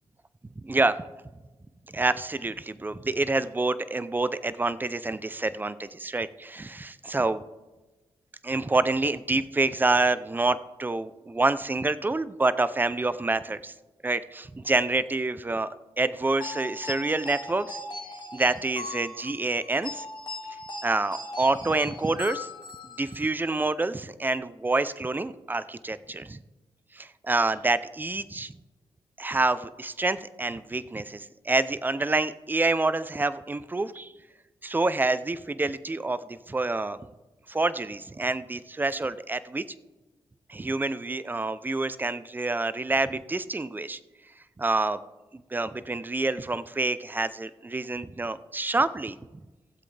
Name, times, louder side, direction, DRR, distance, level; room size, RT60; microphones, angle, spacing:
voice 1, 0.6-1.0 1.9-7.4 8.4-13.7 14.0-17.8 18.3-20.1 20.8-22.5 23.0-26.4 26.9-28.5 29.2-34.1 34.6-37.0 37.5-39.6 40.5-44.0 44.6-45.0 45.3-49.4, right 2 dB, 20° right, 15 dB, 0.5 m, -27 dB
sound 1, 16.4-23.3, left 2 dB, 45° left, 1.4 m, -39 dB
16.5 x 7.6 x 3.3 m, 1.1 s
cardioid pair, 85°, 10 cm